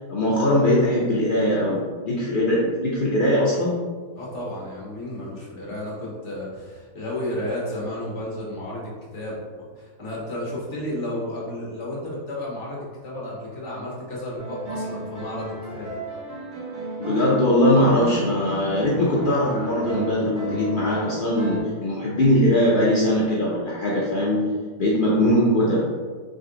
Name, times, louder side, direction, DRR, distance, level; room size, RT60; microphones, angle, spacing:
voice 1, 0.1-3.8 17.0-24.5 24.8-25.9, left 1 dB, 70° left, -5 dB, 0.4 m, -21 dB
voice 2, 4.1-15.9, left 1 dB, 50° left, -4 dB, 1.3 m, -32 dB
sound 1, 14.4-21.6, right 1 dB, 50° right, 2.0 m, -33 dB
3.7 x 3.3 x 3.8 m, 1.5 s
omnidirectional pair, 1.7 m